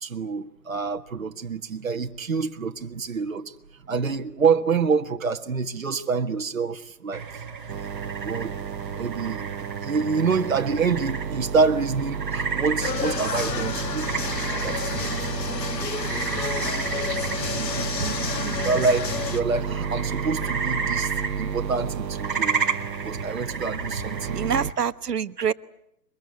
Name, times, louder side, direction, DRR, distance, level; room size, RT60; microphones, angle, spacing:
voice 1, 0.0-3.5 3.9-7.2 8.2-8.5 9.0-9.5 9.8-14.1 14.6-15.2 17.5-18.3 18.6-21.1 21.4-22.6 23.0-24.4, right 5 dB, 55° right, 1.7 m, -26 dB
sound 1, 7.1-24.7, right 5 dB, 30° right, 1.9 m, -33 dB
sound 2, 7.7-24.7, right 7 dB, 90° right, 1.1 m, -33 dB
sound 3, 12.8-19.4, left 5 dB, 80° left, 2.1 m, -30 dB
voice 2, 17.8-18.9 24.3-25.5, right 7 dB, 70° right, 1.2 m, -28 dB
23.5 x 21.0 x 9.6 m
hypercardioid pair, 180°, 49 cm